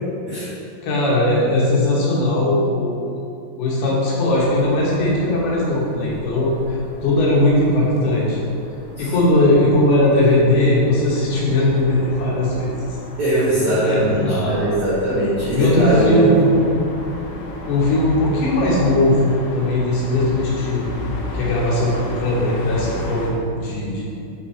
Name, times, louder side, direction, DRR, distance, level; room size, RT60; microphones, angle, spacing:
voice 1, 0.8-3.2 3.6-8.4 9.0-12.7 13.7-14.6 15.6-16.7 17.7-19.2 19.5-20.9 21.3-24.0, left 1 dB, 70° left, -5 dB, 2.7 m, -19 dB
sound 1, 4.2-23.3, left 1 dB, 90° left, 2.0 m, -34 dB
voice 2, 13.2-16.3, right 1 dB, 75° right, -10 dB, 1.7 m, -20 dB
7.8 x 3.6 x 4.2 m, 2.5 s
omnidirectional pair, 5.1 m